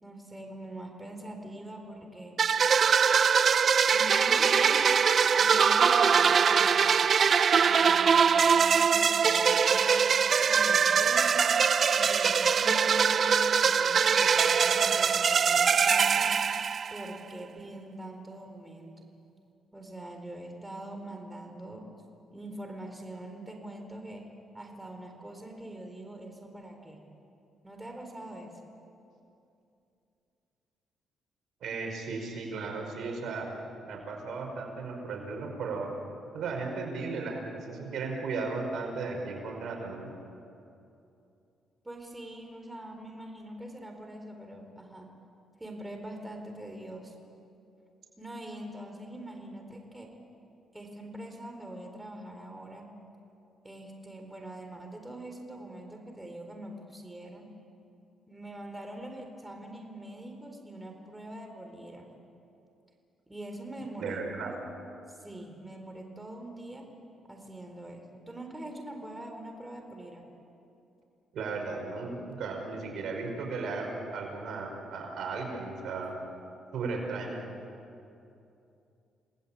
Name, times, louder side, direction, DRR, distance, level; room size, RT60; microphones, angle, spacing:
voice 1, 0.0-2.3 3.9-4.9 5.4-6.9 7.5-10.0 10.4-11.5 11.9-16.3 16.9-19.0 19.7-21.9 22.3-24.2 24.5-27.0 27.6-28.5 41.8-45.1 45.6-47.1 48.2-50.1 50.7-52.9 53.6-57.5 58.3-62.1 63.3-64.7 65.1-66.9 67.3-70.2, right 1 dB, 10° right, 3 dB, 4.2 m, -43 dB
sound 1, 2.4-17.2, right 6 dB, 50° right, 0.6 m, -23 dB
voice 2, 31.6-33.5 33.8-35.9 36.3-40.1 64.0-64.5 71.3-76.1 76.7-77.4, right 4 dB, 70° right, 1 dB, 5.2 m, -35 dB
29.5 x 19.5 x 8.8 m, 2.7 s
cardioid pair, 90°, 0 cm